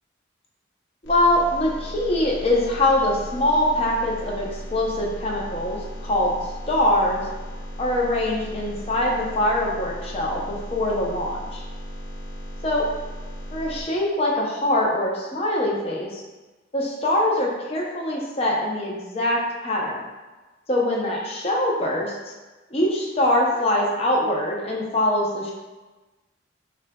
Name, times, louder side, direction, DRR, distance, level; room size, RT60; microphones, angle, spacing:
sound 1, 1.0-13.8, equal, 75° left, 0.9 m, -36 dB
voice 1, 1.0-6.4 6.7-7.3 7.8-11.6 12.6-12.9 13.5-16.2 16.7-20.0 20.7-22.2 22.7-25.5, left 1 dB, 30° left, -2 dB, 0.6 m, -23 dB
6.1 x 2.2 x 2.2 m, 1.2 s
head